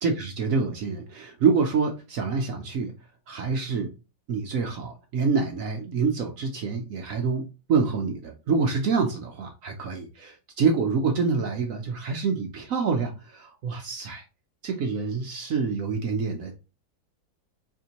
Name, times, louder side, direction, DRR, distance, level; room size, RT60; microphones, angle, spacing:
voice 1, 0.0-2.9 3.3-3.9 4.3-7.4 7.7-14.2 14.6-16.6, right 5 dB, 75° right, 3 dB, 0.7 m, -26 dB
4.3 x 2.7 x 2.8 m, 0.30 s
omnidirectional pair, 2.0 m